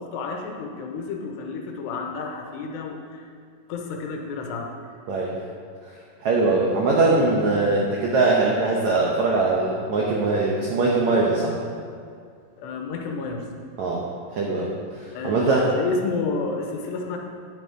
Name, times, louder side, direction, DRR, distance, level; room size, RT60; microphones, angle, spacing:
voice 1, 0.0-3.3 3.7-4.7 12.6-13.4 15.1-17.2, left 4 dB, 85° left, 2 dB, 3.1 m, -30 dB
voice 2, 6.2-11.5 13.8-14.0 14.3-15.7, right 3 dB, 90° right, -3 dB, 1.6 m, -21 dB
9.9 x 8.1 x 4.9 m, 2.2 s
omnidirectional pair, 4.8 m